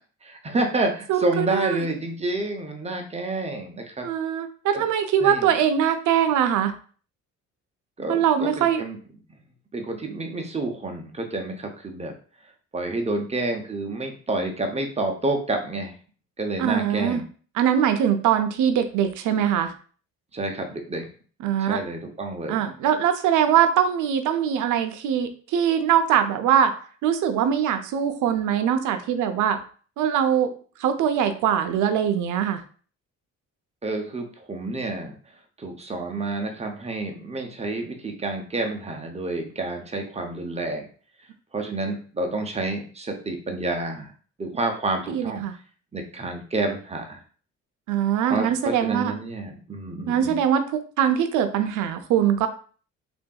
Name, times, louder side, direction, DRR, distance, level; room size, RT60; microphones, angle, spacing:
voice 1, 0.2-4.1 4.7-4.8 5.2-5.5 8.0-9.0 9.7-12.1 12.7-15.9 16.4-17.2 20.3-21.1 21.6-22.6 33.8-35.2 35.6-40.9 41.5-44.1 44.4-45.4 45.9-47.2 48.2-50.4, right 2 dB, 20° right, 3 dB, 0.6 m, -29 dB
voice 2, 1.1-1.8 4.0-6.7 8.1-8.8 16.6-17.2 17.6-19.7 21.4-21.8 22.5-26.7 27.0-29.6 30.0-30.5 30.8-32.6 45.1-45.5 47.9-49.1 50.1-52.5, right 9 dB, 85° right, 8 dB, 0.5 m, -22 dB
3.4 x 2.6 x 2.2 m, 0.41 s
cardioid pair, 90°, 30 cm